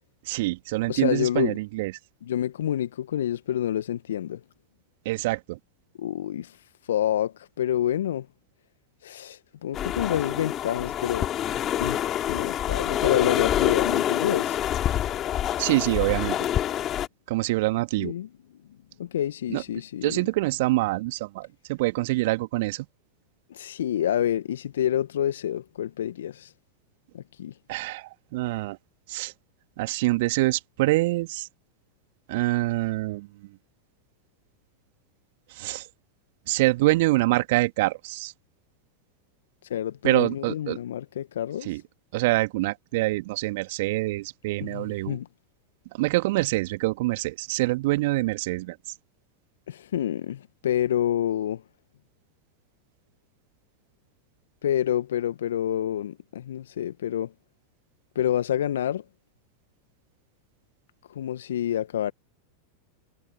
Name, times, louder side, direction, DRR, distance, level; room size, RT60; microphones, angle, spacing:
voice 1, 0.3-1.9 5.0-5.6 15.6-16.4 17.3-18.1 19.5-19.6 20.0-22.9 27.7-28.8 29.1-29.3 29.8-31.5 32.3-33.3 35.5-35.9 36.5-38.3 40.0-40.8 41.6-41.8 42.1-45.2 45.9-48.8, right 20 dB, 55° right, 2.4 m, -25 dB
voice 2, 0.9-1.6 2.2-4.4 6.0-8.3 9.0-11.3 11.8-14.6 18.0-18.3 19.0-20.2 23.5-26.5 27.1-27.6 39.7-41.8 44.6-45.3 49.7-51.6 54.6-57.3 58.1-59.0 61.1-62.1, left 11 dB, 70° left, 1.4 m, -28 dB
sound 1, 9.7-17.1, left 11 dB, 35° left, 4.7 m, -26 dB
figure-of-eight pair, 90°, 0 cm